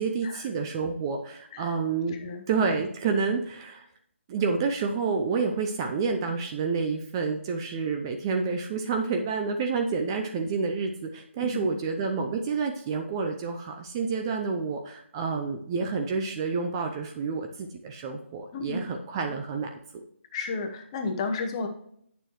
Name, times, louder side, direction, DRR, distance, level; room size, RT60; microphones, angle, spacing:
voice 1, 0.0-2.2 2.5-3.8 4.3-20.0, right 5 dB, 20° right, 4 dB, 0.6 m, -29 dB
voice 2, 2.1-2.4 11.4-11.8 18.5-18.9 20.3-21.7, left 4 dB, 25° left, 5 dB, 1.0 m, -33 dB
8.9 x 6.8 x 3.1 m, 0.68 s
figure-of-eight pair, 155°, 7 cm